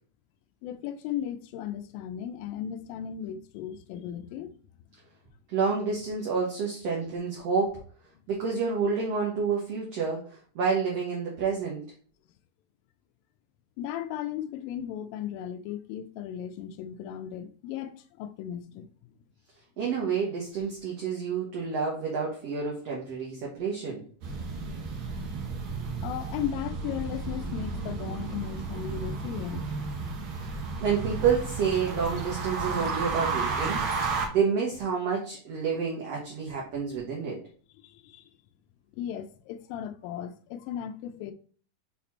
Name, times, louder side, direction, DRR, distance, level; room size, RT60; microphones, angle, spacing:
voice 1, 0.6-4.6 13.8-18.9 25.8-30.2 37.8-38.3 38.9-41.3, left 10 dB, 90° left, 2.3 m, -36 dB
voice 2, 5.5-7.8 8.3-11.9 19.8-24.0 30.8-33.8 34.3-37.4, right 5 dB, 60° right, 1.9 m, -29 dB
sound 1, 24.2-34.3, right 4 dB, 80° right, 1.1 m, -33 dB
5.9 x 4.2 x 4.2 m
omnidirectional pair, 4.0 m